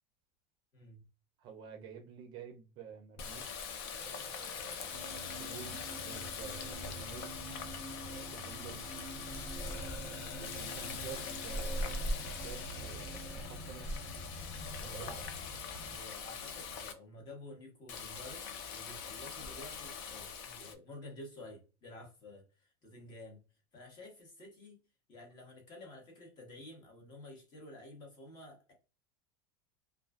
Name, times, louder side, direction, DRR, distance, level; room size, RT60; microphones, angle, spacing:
voice 1, 1.4-3.7 3.9-7.3 8.0-8.9 9.5-14.0 14.7-15.3, right 7 dB, 40° right, 0.5 m, -50 dB
Water tap faucet, 3.2-16.9 17.9-20.7, left 4 dB, 60° left, 0.5 m, -42 dB
sound 1, 4.9-14.9 15.5-15.6, right 2 dB, 15° left, 0.9 m, -49 dB
sound 2, 6.3-16.0, right 1 dB, 80° left, 1.2 m, -52 dB
voice 2, 14.8-15.2 15.9-23.4 23.7-24.8 25.1-28.7, left 1 dB, 35° left, 1.1 m, -51 dB
2.3 x 2.3 x 2.3 m
supercardioid pair, 145°, 13 cm